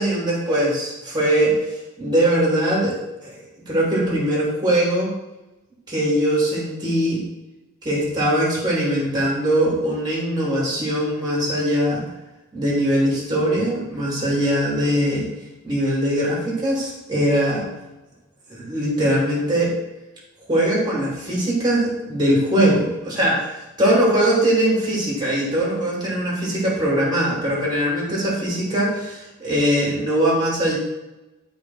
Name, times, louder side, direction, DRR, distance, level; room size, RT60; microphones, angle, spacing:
voice 1, 0.0-1.7 2.0-5.1 5.9-7.2 7.8-12.0 12.5-15.3 15.6-17.6 18.5-19.7 20.5-23.5 23.8-30.7, right 1 dB, 20° right, -4 dB, 3.9 m, -21 dB
13.0 x 5.2 x 4.6 m, 1.0 s
head